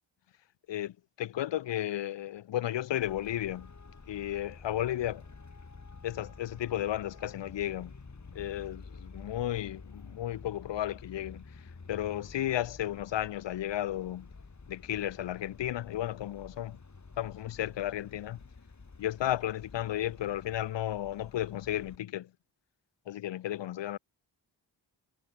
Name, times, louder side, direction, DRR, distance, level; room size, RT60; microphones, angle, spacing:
voice 1, 0.7-3.7 4.1-5.2 6.0-7.9 8.3-11.4 11.9-14.3 14.7-16.8 17.2-18.4 19.0-22.3 23.1-24.0, left 12 dB, 75° left, 0.6 m, -33 dB
Traffic noise roadway noise, 3.0-22.0, left 4 dB, 40° left, 2.7 m, -50 dB
cardioid pair, 60°, 44 cm